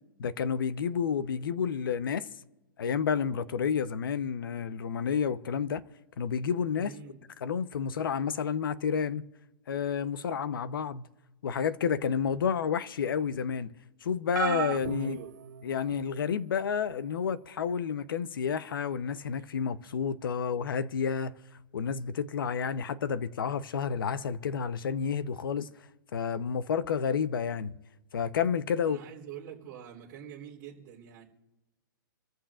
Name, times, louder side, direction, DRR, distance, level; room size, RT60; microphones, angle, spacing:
voice 1, 0.2-2.3 2.8-5.8 6.2-6.9 7.4-9.2 9.7-11.0 11.4-13.7 14.0-15.2 15.6-21.3 21.7-25.7 26.1-27.8 28.1-29.0, left 7 dB, 80° left, 0.9 m, -30 dB
voice 2, 6.7-7.2 15.0-15.3 28.8-31.3, right 9 dB, 25° right, 3.3 m, -45 dB
sound 1, 14.3-16.1 16.9-17.1 18.4-18.5, right 9 dB, 60° right, 0.7 m, -35 dB
27.0 x 14.5 x 2.5 m
hypercardioid pair, 170°, 11 cm